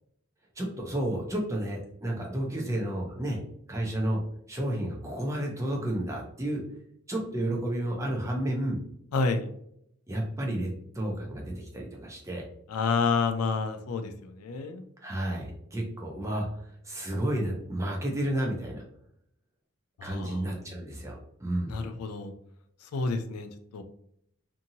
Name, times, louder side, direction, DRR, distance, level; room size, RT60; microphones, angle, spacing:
voice 1, 0.6-3.4 3.7-4.2 4.5-6.6 7.1-8.8 10.1-12.4 15.0-16.5 16.8-18.8 20.0-21.7, right 1 dB, 15° right, 0 dB, 0.5 m, -31 dB
voice 2, 9.1-9.5 12.7-14.8 20.0-20.4 21.7-22.3 22.9-23.8, left 4 dB, 85° left, 8 dB, 0.4 m, -29 dB
2.7 x 2.6 x 2.7 m, 0.71 s
head